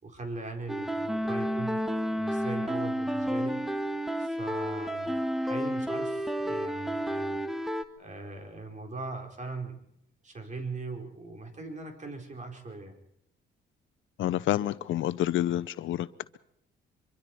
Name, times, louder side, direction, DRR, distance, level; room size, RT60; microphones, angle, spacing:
voice 1, 0.0-3.6 4.2-7.4 8.0-9.8 10.2-13.0, right 3 dB, 40° right, 4.4 m, -40 dB
sound 1, 0.7-7.8, equal, ahead, 1.5 m, -31 dB
voice 2, 14.2-16.1, left 13 dB, 75° left, 0.8 m, -28 dB
24.5 x 23.5 x 4.6 m
cardioid pair, 90°, 20 cm